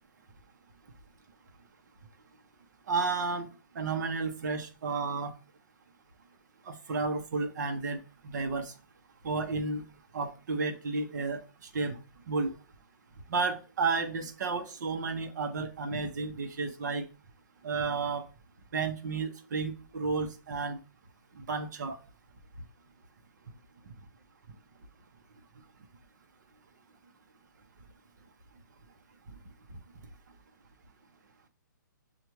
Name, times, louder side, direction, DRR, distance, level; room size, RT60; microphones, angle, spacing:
voice 1, 2.9-3.5 3.7-5.3 6.7-8.7 9.2-9.8 10.1-12.0 12.3-12.5 13.3-17.0 17.6-18.2 18.7-20.8 21.3-22.0, right 4 dB, 60° right, 1.0 m, -32 dB
6.6 x 2.5 x 3.1 m
hypercardioid pair, 150°, 11 cm